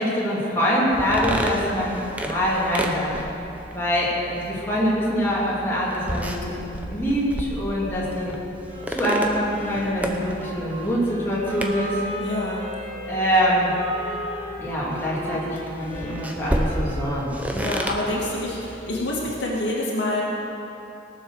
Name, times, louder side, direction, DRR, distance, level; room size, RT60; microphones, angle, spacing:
voice 1, 0.0-3.2 3.7-6.5 6.8-8.3 8.9-12.0 13.1-13.7 14.6-17.3, equal, 15° left, -8 dB, 2.9 m, -24 dB
sound 1, 0.9-19.4, right 1 dB, 10° right, 0.8 m, -33 dB
Wind instrument woodwind instrument, 8.7-17.5, equal, 25° right, 3.6 m, -36 dB
voice 2, 12.2-12.6 17.5-20.2, left 1 dB, 65° left, -4 dB, 2.1 m, -27 dB
18.0 x 7.2 x 6.4 m, 3.0 s
head